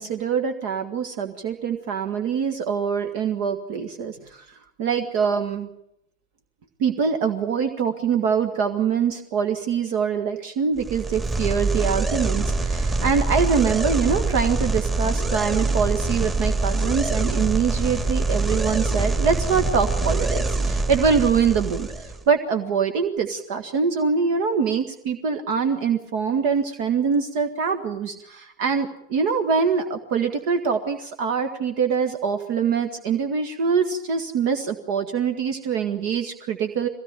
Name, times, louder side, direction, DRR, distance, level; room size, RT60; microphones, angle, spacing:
voice 1, 0.0-5.7 6.8-36.9, right 6 dB, 45° right, 7 dB, 1.7 m, -24 dB
sound 1, 10.8-22.2, right 3 dB, 15° right, 2.9 m, -24 dB
22.5 x 17.0 x 8.9 m, 0.79 s
figure-of-eight pair, 90°, 0 cm